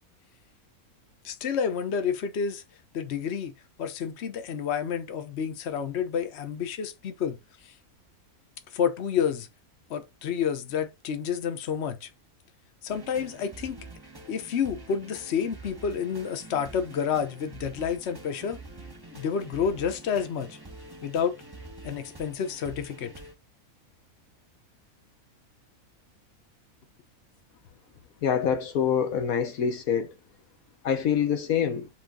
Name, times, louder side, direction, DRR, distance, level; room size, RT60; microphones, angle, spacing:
voice 1, 1.2-2.6 2.9-3.5 3.8-7.4 8.7-9.5 9.9-12.1 12.8-13.8 14.3-18.6 19.1-20.6 21.0-21.4 21.8-23.1, left 7 dB, 50° left, 1.2 m, -29 dB
sound 1, 12.9-23.3, right 2 dB, 20° right, 1.0 m, -46 dB
voice 2, 28.2-30.2 30.8-31.9, left 8 dB, 70° left, 1.2 m, -25 dB
7.5 x 3.6 x 3.7 m
omnidirectional pair, 1.6 m